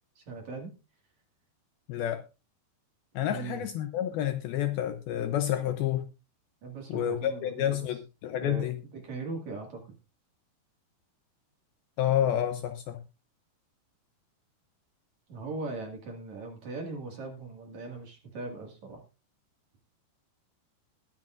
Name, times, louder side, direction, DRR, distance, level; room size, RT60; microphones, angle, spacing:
voice 1, 0.2-0.7 3.2-3.6 6.6-8.0 8.3-8.7 9.0-9.8 15.3-19.0, right 3 dB, 50° right, 2 dB, 2.8 m, -39 dB
voice 2, 1.9-2.2 3.2-6.1 6.9-8.8 12.0-13.0, left 11 dB, 75° left, 8 dB, 2.3 m, -29 dB
21.0 x 8.4 x 2.5 m, 0.29 s
omnidirectional pair, 5.0 m